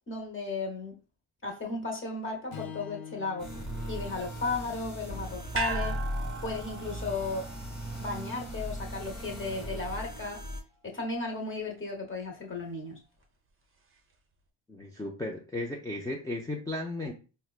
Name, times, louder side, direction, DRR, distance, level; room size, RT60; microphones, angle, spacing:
voice 1, 0.1-1.0 1.4-3.5 3.9-6.0 6.4-7.5 8.0-10.4 10.8-13.0, left 3 dB, 25° left, 1.0 m, -35 dB
Strum, 2.5-6.8, left 7 dB, 85° left, 0.7 m, -48 dB
sound 1, 3.4-10.6, equal, 10° right, 1.1 m, -38 dB
sound 2, 5.5-9.9 10.2-10.3, right 5 dB, 30° right, 0.7 m, -39 dB
voice 2, 14.7-17.1, left 2 dB, 10° left, 0.4 m, -35 dB
4.3 x 2.2 x 2.4 m
cardioid pair, 90°, 45 cm